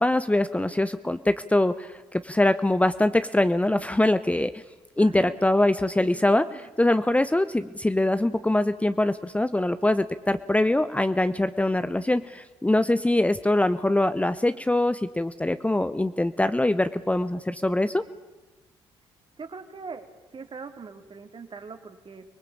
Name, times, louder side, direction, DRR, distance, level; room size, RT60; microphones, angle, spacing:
voice 1, 0.0-4.6 5.0-18.0, left 1 dB, 10° left, 12 dB, 0.9 m, -23 dB
voice 2, 5.0-5.3 6.0-6.2 6.5-6.7 19.4-22.2, right 4 dB, 40° right, 7 dB, 2.9 m, -41 dB
25.0 x 19.5 x 8.7 m, 1.1 s
hypercardioid pair, 55°, 13 cm